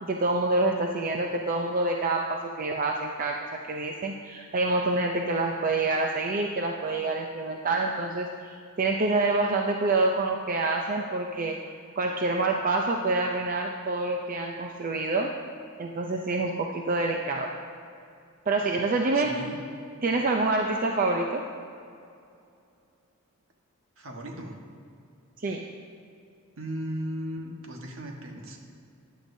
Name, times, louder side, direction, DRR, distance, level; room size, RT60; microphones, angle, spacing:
voice 1, 0.0-11.6 12.0-15.4 15.8-17.5 18.5-19.4 20.0-21.5 25.4-25.7, right 2 dB, 40° right, 2 dB, 0.5 m, -27 dB
voice 2, 19.1-19.6 24.0-24.6 26.6-28.6, equal, 65° right, 1 dB, 1.3 m, -36 dB
14.5 x 10.0 x 2.7 m, 2.5 s
head